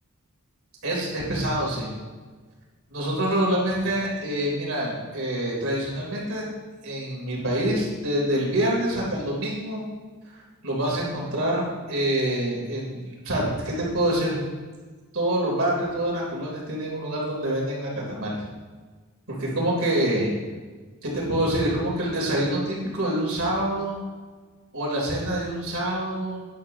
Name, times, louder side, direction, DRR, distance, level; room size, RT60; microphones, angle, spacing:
voice 1, 0.8-1.9 2.9-6.4 6.8-9.9 10.3-13.0 13.2-14.4 15.1-18.4 19.3-20.3 21.0-24.0 24.7-26.5, right 1 dB, 70° right, -3 dB, 3.5 m, -26 dB
12.0 x 10.5 x 2.9 m, 1.4 s
head